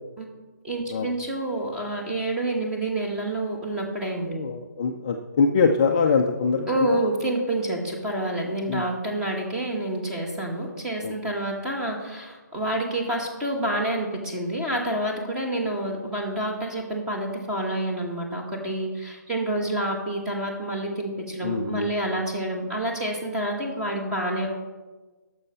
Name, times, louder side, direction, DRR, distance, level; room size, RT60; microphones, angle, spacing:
voice 1, 0.6-4.4 6.7-24.5, right 1 dB, 5° right, -1 dB, 1.0 m, -28 dB
voice 2, 4.3-6.7 8.7-8.9 11.0-11.1 21.4-21.9, left 5 dB, 20° left, 2 dB, 0.4 m, -23 dB
9.8 x 6.9 x 5.4 m, 1.3 s
hypercardioid pair, 170°, 10 cm